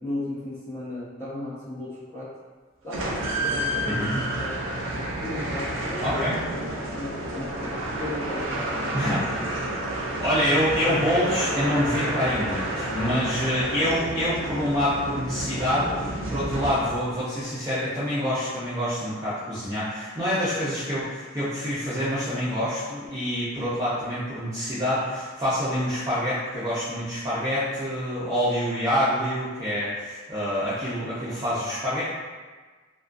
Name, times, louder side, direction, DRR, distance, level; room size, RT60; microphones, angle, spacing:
voice 1, 0.0-2.3 2.8-4.0 4.4-4.5 5.2-9.0, left 1 dB, 10° left, -12 dB, 0.9 m, -35 dB
sound 1, 2.9-17.2, right 1 dB, 70° right, 0.4 m, -30 dB
voice 2, 3.8-4.2 6.0-6.4 8.9-9.2 10.2-32.0, equal, 15° right, -13 dB, 0.4 m, -26 dB
2.3 x 2.2 x 2.4 m, 1.4 s
head